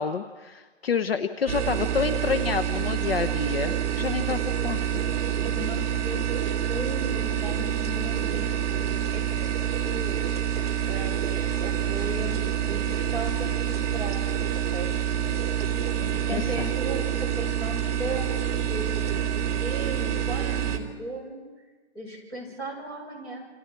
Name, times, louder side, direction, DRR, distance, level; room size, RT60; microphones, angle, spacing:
voice 1, 0.0-5.0 16.3-16.7, left 6 dB, 55° left, 10 dB, 1.1 m, -29 dB
sound 1, 1.5-20.8, right 9 dB, 35° right, 2.7 m, -27 dB
voice 2, 5.0-10.6 10.9-11.1 11.5-14.2 14.7-14.9 16.0-18.9 19.1-21.4 21.9-23.5, right 1 dB, 10° left, -4 dB, 5.6 m, -37 dB
29.0 x 28.0 x 4.7 m, 1.3 s
hypercardioid pair, 180°, 35 cm